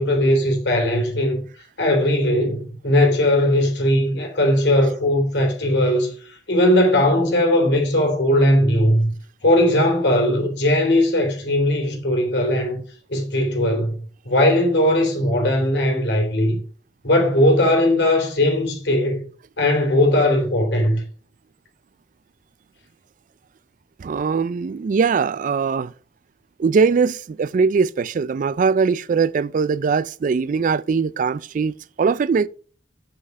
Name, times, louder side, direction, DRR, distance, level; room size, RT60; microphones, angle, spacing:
voice 1, 0.0-1.4 1.8-9.1 9.4-12.8 13.1-16.6 17.0-19.3 19.6-21.0, left 1 dB, 70° left, 3.3 m, -19 dB
voice 2, 24.0-25.9 26.6-32.5, right 5 dB, 45° right, 0.3 m, -21 dB
7.9 x 6.4 x 4.8 m
head